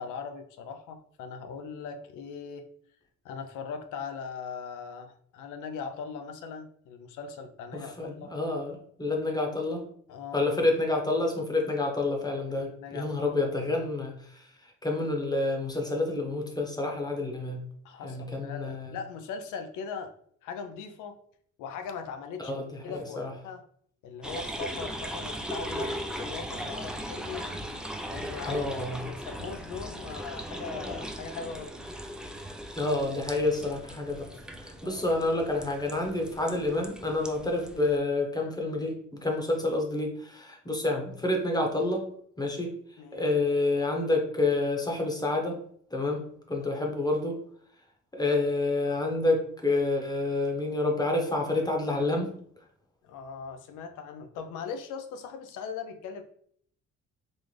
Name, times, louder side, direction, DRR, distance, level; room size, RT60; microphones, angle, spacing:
voice 1, 0.0-2.6 3.2-8.3 10.1-10.5 12.5-13.1 17.8-20.1 20.4-21.2 21.6-22.5 22.8-23.6 24.0-25.9 26.2-27.5 28.1-28.6 29.0-31.7 34.8-35.1 43.0-43.3 46.5-46.7 53.0-56.2, left 6 dB, 90° left, 7 dB, 0.5 m, -39 dB
voice 2, 7.7-9.8 10.3-14.5 14.8-17.6 18.0-18.9 22.4-23.3 28.5-29.0 32.8-34.3 34.6-42.0 42.4-42.7 43.1-45.6 45.9-47.4 48.1-52.3, left 2 dB, 15° left, 1 dB, 0.8 m, -28 dB
sound 1, 24.2-38.0, equal, 5° right, 0.3 m, -38 dB
4.0 x 2.4 x 3.2 m, 0.62 s
cardioid pair, 90°, 30 cm